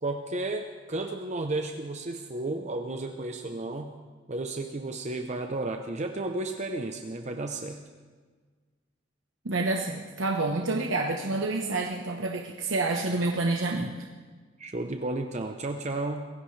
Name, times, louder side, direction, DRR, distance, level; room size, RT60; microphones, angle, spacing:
voice 1, 0.0-4.0 4.3-7.8 14.6-16.3, right 2 dB, 35° right, 5 dB, 0.8 m, -33 dB
voice 2, 9.4-14.0, right 2 dB, 85° right, 1 dB, 1.1 m, -28 dB
27.0 x 16.0 x 3.3 m, 1.5 s
head